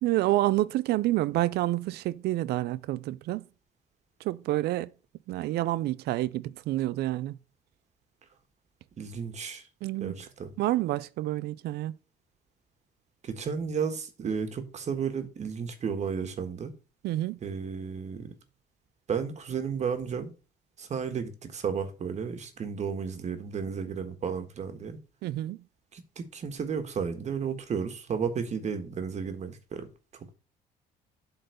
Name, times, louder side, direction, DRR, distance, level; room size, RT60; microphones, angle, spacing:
voice 1, 0.0-3.4 4.2-4.9 5.3-7.4 9.8-10.2 10.6-11.9 17.0-17.4 25.2-25.6, right 16 dB, 75° right, 0.5 m, -28 dB
voice 2, 9.0-9.6 10.0-10.5 13.2-16.7 17.4-18.3 19.1-20.3 20.8-25.0 25.9-29.9, right 6 dB, 45° right, 1.4 m, -33 dB
7.9 x 3.9 x 6.7 m
cardioid pair, 110°, 17 cm